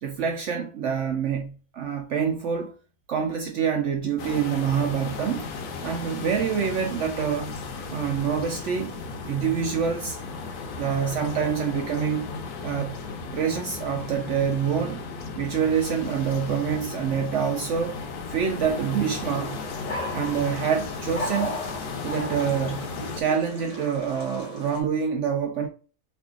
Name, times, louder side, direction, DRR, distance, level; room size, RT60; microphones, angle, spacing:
voice 1, 0.0-2.7 3.1-5.5 5.8-7.5 7.9-8.9 9.2-10.2 10.8-12.3 12.6-13.0 13.3-15.0 15.4-18.0 18.3-19.6 20.1-21.6 22.0-22.9 23.1-25.7, right 7 dB, 70° right, 0.7 m, -26 dB
sound 1, 4.2-23.2, left 4 dB, 75° left, 1.2 m, -35 dB
sound 2, 19.1-24.8, left 1 dB, 30° left, 0.7 m, -36 dB
3.2 x 2.5 x 3.6 m
omnidirectional pair, 1.7 m